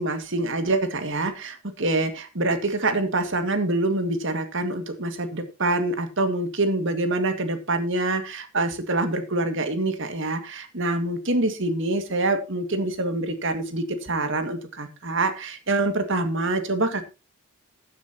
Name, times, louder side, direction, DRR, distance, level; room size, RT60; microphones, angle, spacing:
voice 1, 0.0-17.0, right 2 dB, 60° right, 8 dB, 2.0 m, -25 dB
15.0 x 9.7 x 2.9 m, 0.29 s
head